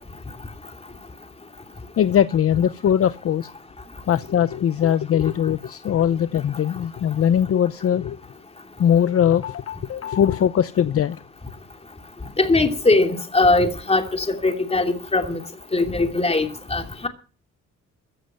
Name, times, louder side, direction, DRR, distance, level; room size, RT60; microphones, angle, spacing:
voice 1, 2.0-3.5 4.1-8.2 8.8-11.2, left 9 dB, 50° left, 0.7 m, -20 dB
voice 2, 12.4-15.4 15.7-17.1, left 2 dB, 20° left, 2.8 m, -20 dB
15.5 x 7.7 x 7.7 m
cardioid pair, 90°, 30 cm